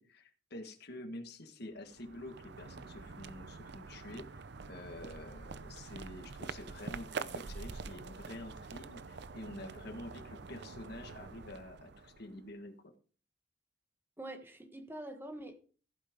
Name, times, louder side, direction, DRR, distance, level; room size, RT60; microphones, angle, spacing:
voice 1, 0.0-12.9, left 1 dB, 60° left, 1.6 m, -48 dB
sound 1, 1.8-12.5, right 4 dB, 65° right, 0.7 m, -46 dB
voice 2, 14.2-15.6, right 1 dB, 10° right, 1.4 m, -45 dB
15.5 x 8.8 x 3.7 m
head